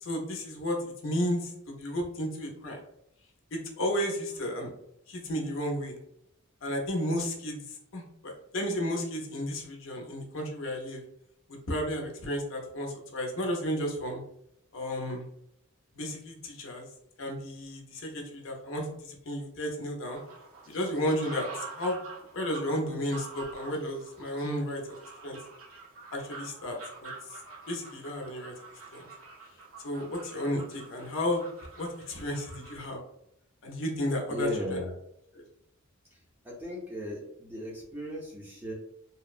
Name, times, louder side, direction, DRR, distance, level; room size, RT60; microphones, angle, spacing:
voice 1, 0.0-2.8 3.5-4.7 5.1-6.0 6.6-11.0 11.5-14.2 14.7-15.2 16.0-16.9 17.2-20.2 20.7-22.0 22.3-24.8 25.2-25.4 26.1-26.8 27.0-27.1 27.7-28.5 28.9-29.0 29.8-33.0 33.6-34.5 35.3-35.4, equal, 60° left, 1 dB, 0.6 m, -33 dB
sound 1, 20.1-32.9, right 4 dB, 70° right, 0.6 m, -47 dB
voice 2, 34.3-34.9 36.1-38.7, left 1 dB, 10° right, -4 dB, 0.5 m, -36 dB
2.7 x 2.0 x 2.4 m, 0.76 s
head